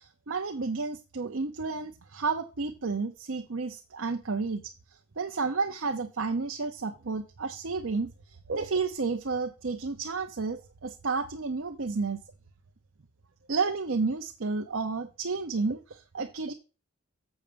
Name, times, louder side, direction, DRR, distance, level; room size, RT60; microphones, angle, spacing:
voice 1, 0.0-4.7 5.2-12.2 13.5-16.5, right 4 dB, 60° right, 5 dB, 0.7 m, -31 dB
7.3 x 6.4 x 5.1 m, 0.32 s
head